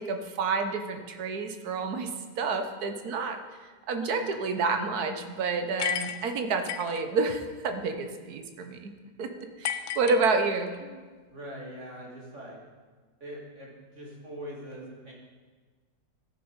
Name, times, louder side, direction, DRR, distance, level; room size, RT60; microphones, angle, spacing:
voice 1, 0.0-2.1 2.4-3.4 3.9-8.9 9.2-11.0, right 4 dB, 60° right, 7 dB, 1.3 m, -29 dB
sound 1, 5.8-7.0 9.6-10.8, left 10 dB, 70° left, 0.9 m, -33 dB
voice 2, 11.3-12.6 13.2-15.1, equal, 40° right, -3 dB, 2.5 m, -42 dB
13.5 x 7.0 x 5.1 m, 1.4 s
omnidirectional pair, 2.0 m